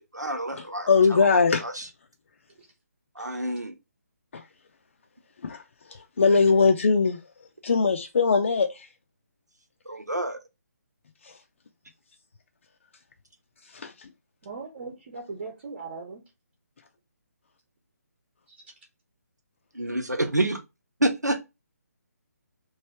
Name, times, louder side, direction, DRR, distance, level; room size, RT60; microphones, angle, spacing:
voice 1, 0.0-1.9 3.2-3.7 9.9-10.4 19.7-20.6 21.0-21.4, right 1 dB, 80° right, 1.1 m, -28 dB
voice 2, 0.6-1.6 4.3-4.4 5.4-5.6 5.9-7.2 7.6-8.9 11.2-11.3 13.7-13.9, left 4 dB, 45° left, 0.5 m, -21 dB
voice 3, 14.4-16.2 18.5-18.6, right 4 dB, 40° right, 1.0 m, -39 dB
3.1 x 2.6 x 4.3 m
figure-of-eight pair, 145°, 9 cm